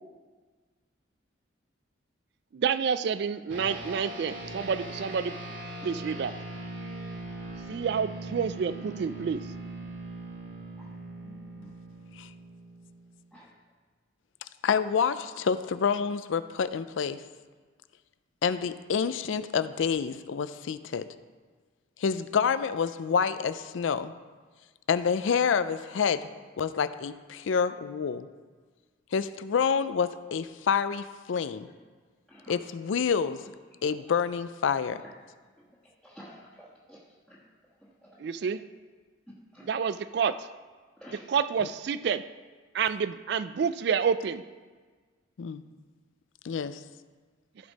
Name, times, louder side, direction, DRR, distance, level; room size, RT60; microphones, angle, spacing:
voice 1, 2.5-5.4 5.8-6.3 7.7-9.4 38.2-38.6 39.7-40.5 41.1-42.2 42.7-44.4, right 6 dB, 55° right, 14 dB, 0.3 m, -28 dB
sound 1, 3.5-13.2, right 2 dB, 80° right, 2.0 m, -40 dB
voice 2, 11.2-11.7 13.3-13.5 32.3-32.5 35.0-35.1 35.6-35.7 36.0-37.0 37.3-37.4 37.8-38.2 39.5-39.6 41.0-41.3, equal, ahead, -11 dB, 1.3 m, -50 dB
voice 3, 14.6-17.2 18.4-21.0 22.0-24.1 24.9-26.3 26.6-28.3 29.1-31.7 32.5-33.4 33.8-35.0 45.4-45.6 46.4-46.8, left 6 dB, 75° left, 13 dB, 0.4 m, -28 dB
15.0 x 5.1 x 4.1 m, 1.4 s
head